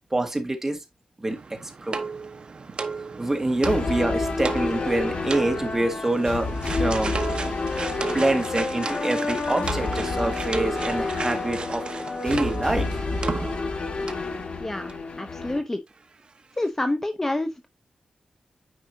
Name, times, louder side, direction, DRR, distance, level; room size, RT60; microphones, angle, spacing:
voice 1, 0.1-0.8 1.2-2.0 3.2-7.2 7.9-12.9, right 2 dB, 20° right, 1.7 m, -26 dB
sound 1, 1.3-13.8 14.1-14.3 14.9-15.0 15.2-15.3, right 4 dB, 50° right, 1.0 m, -34 dB
sound 2, 3.6-15.6, left 3 dB, 55° left, 1.6 m, -29 dB
voice 2, 14.6-14.9 15.2-15.8 16.6-17.7, left 1 dB, 15° left, 0.6 m, -27 dB
9.5 x 4.9 x 2.7 m
wide cardioid pair, 140°, 2 cm